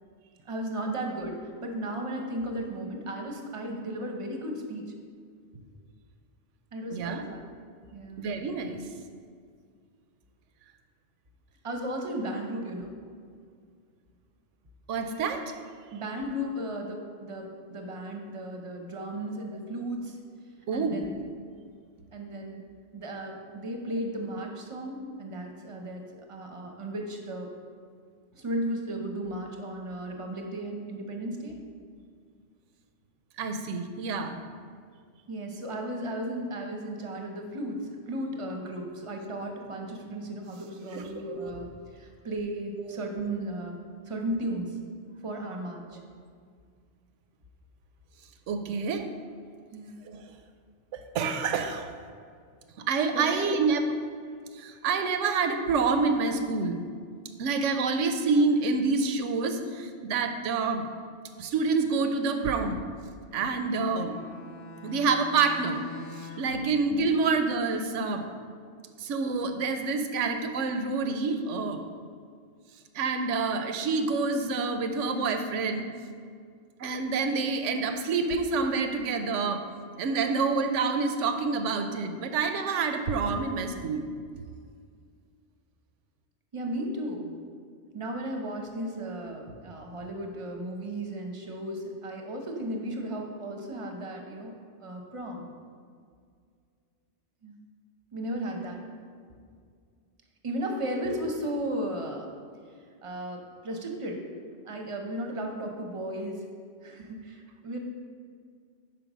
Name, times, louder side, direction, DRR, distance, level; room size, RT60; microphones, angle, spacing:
voice 1, 0.5-4.8 6.7-7.4 7.9-8.3 11.6-13.0 15.9-20.2 20.7-21.1 22.1-22.6 22.9-26.0 26.3-27.5 28.3-31.6 35.3-43.8 44.1-44.8 45.2-46.0 49.7-50.0 53.1-53.5 86.5-87.3 87.9-94.5 94.8-95.4 97.4-97.6 98.1-98.8 100.4-102.3 103.0-104.2 104.7-106.5 106.8-107.8, right 1 dB, 30° right, 2 dB, 0.7 m, -35 dB
voice 2, 6.9-7.2 8.2-8.8 14.9-15.5 20.7-21.0 33.4-34.4 40.9-41.5 48.5-49.1 50.1-50.3 50.9-51.9 52.8-53.8 54.5-56.8 57.4-60.8 61.4-62.8 63.3-64.2 64.8-65.9 66.2-68.3 69.0-71.8 72.9-75.9 76.8-79.6 80.0-84.1, right 4 dB, 85° right, 7 dB, 0.9 m, -27 dB
Bowed string instrument, 63.3-66.7, left 1 dB, 70° left, 0.8 m, -45 dB
5.1 x 4.8 x 6.0 m, 2.1 s
omnidirectional pair, 1.2 m